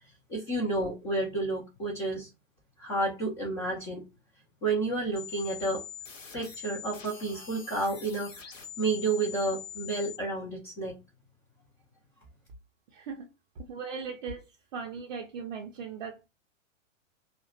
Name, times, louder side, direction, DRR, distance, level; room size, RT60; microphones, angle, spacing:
voice 1, 0.3-2.3 2.8-4.0 4.6-5.8 6.3-8.5 8.8-10.9, right 2 dB, 15° left, 0.4 m, -30 dB
sound 1, 5.2-10.2, left 8 dB, 80° left, 0.8 m, -44 dB
voice 2, 12.9-13.3 13.7-14.4 14.7-16.3, right 5 dB, 35° right, 0.5 m, -38 dB
2.7 x 2.1 x 2.6 m
figure-of-eight pair, 100°, 38 cm